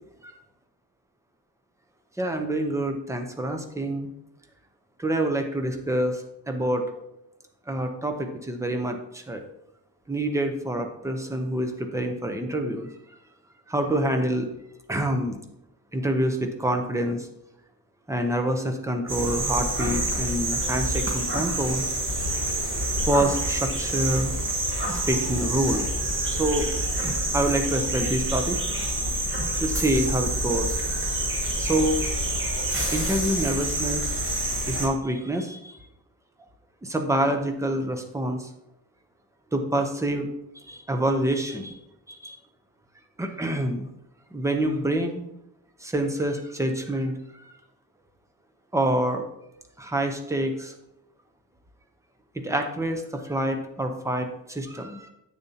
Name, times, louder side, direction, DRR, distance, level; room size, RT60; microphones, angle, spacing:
voice 1, 2.2-4.1 5.0-6.2 6.5-6.9 7.7-9.4 10.1-12.9 13.7-14.5 14.9-15.4 15.9-17.3 18.1-21.8 23.1-24.4 24.9-25.9 26.3-26.7 27.0-28.6 29.6-31.0 31.6-32.0 32.9-34.1 34.7-35.8 36.8-38.5 39.5-40.3 40.7-41.8 42.1-42.4 43.2-43.9 44.3-45.2 45.8-47.5 48.7-49.3 49.8-50.7 52.4-55.1, right 1 dB, 5° right, 5 dB, 0.6 m, -27 dB
sound 1, 19.1-34.9, right 1 dB, 30° right, 1.3 m, -27 dB
8.6 x 6.7 x 2.8 m, 0.85 s
wide cardioid pair, 165°, 40 cm